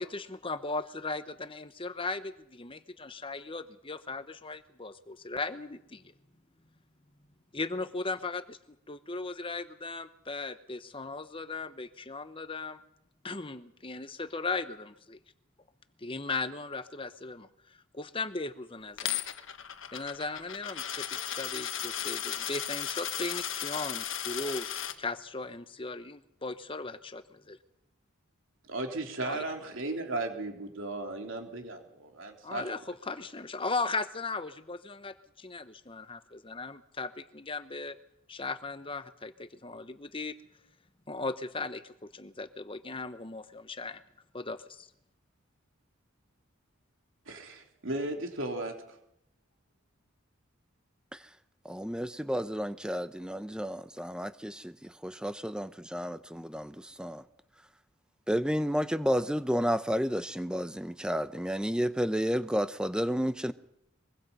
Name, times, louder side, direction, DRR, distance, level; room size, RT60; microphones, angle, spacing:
voice 1, 0.0-6.1 7.5-8.6 8.9-12.8 13.2-15.2 16.0-17.5 17.9-19.2 19.9-27.2 29.2-29.4 32.4-38.0 38.3-40.4 41.1-44.0 44.3-44.9, left 3 dB, 25° left, 1.0 m, -37 dB
Coin (dropping), 19.0-24.9, left 10 dB, 65° left, 1.4 m, -35 dB
voice 2, 28.7-32.6 47.3-49.0, right 2 dB, 65° right, 3.6 m, -36 dB
voice 3, 51.6-57.2 58.3-63.5, equal, 5° right, 0.7 m, -31 dB
24.0 x 23.0 x 5.5 m
head